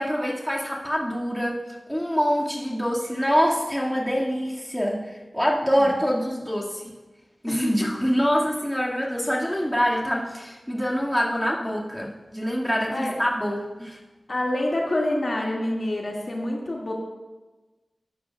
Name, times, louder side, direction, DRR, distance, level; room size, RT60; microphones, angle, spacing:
voice 1, 0.0-1.6 1.9-6.8 7.4-14.0, equal, 5° left, -4 dB, 2.0 m, -25 dB
voice 2, 14.3-16.9, left 1 dB, 60° left, -2 dB, 2.0 m, -27 dB
14.0 x 10.0 x 2.3 m, 1.2 s
cardioid pair, 45°, 0 cm